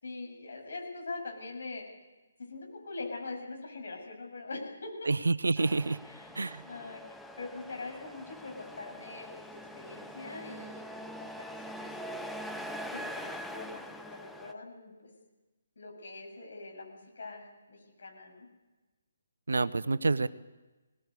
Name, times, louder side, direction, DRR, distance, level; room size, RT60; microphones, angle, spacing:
voice 1, 0.0-1.8 2.4-5.1 6.0-6.3 6.6-7.0 7.4-12.3 12.9-15.1 15.8-18.5, left 3 dB, 60° left, 1 dB, 7.2 m, -43 dB
voice 2, 5.1-6.0 6.3-6.6 19.5-20.3, right 3 dB, 70° right, 15 dB, 0.8 m, -28 dB
Truck, 5.6-14.5, equal, ahead, 0.7 m, -43 dB
23.0 x 18.5 x 8.3 m, 1.2 s
figure-of-eight pair, 140°, 0 cm